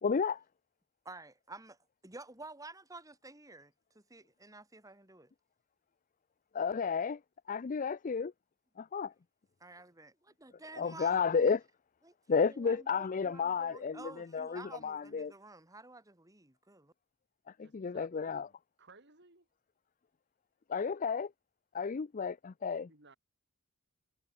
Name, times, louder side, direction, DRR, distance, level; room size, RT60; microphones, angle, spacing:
voice 1, 0.0-0.4 6.5-7.2 7.5-8.3 8.8-9.1 10.8-11.6 12.3-15.3 17.6-18.5 20.7-21.3 21.7-22.9, left 5 dB, 35° left, 0.4 m, -32 dB
voice 2, 1.0-1.8 2.0-5.3 9.6-11.2 12.0-12.1 12.5-16.9, right 2 dB, 15° right, 2.4 m, -51 dB
voice 3, 17.6-19.5 22.9-23.2, right 3 dB, 55° right, 4.4 m, -60 dB
head